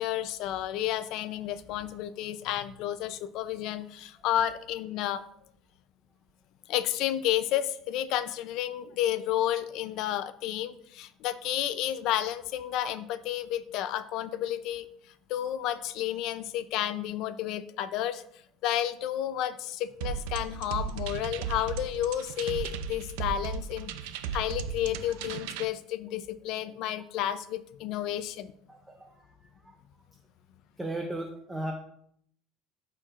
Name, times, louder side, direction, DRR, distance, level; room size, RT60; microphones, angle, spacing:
voice 1, 0.0-5.2 6.7-14.9 15.3-18.2 18.6-23.9 24.3-28.5, left 12 dB, 50° left, 13 dB, 0.5 m, -31 dB
sound 1, 20.0-25.6, right 6 dB, 90° right, 0.5 m, -36 dB
voice 2, 30.8-31.7, right 1 dB, 10° right, 3 dB, 0.5 m, -35 dB
12.5 x 4.5 x 2.5 m, 0.68 s
cardioid pair, 170°, 0 cm